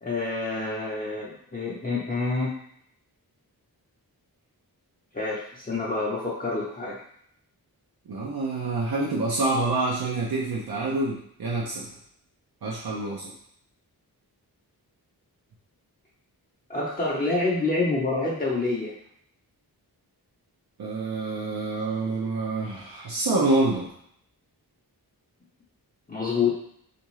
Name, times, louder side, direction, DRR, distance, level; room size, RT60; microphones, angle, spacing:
voice 1, 0.0-2.5 5.1-7.0 16.7-18.9 26.1-26.5, left 3 dB, 25° left, -6 dB, 0.6 m, -27 dB
voice 2, 8.1-11.9 12.6-13.3 20.8-23.9, right 2 dB, 70° right, -4 dB, 0.7 m, -27 dB
3.5 x 2.6 x 3.1 m, 0.68 s
wide cardioid pair, 150°, 38 cm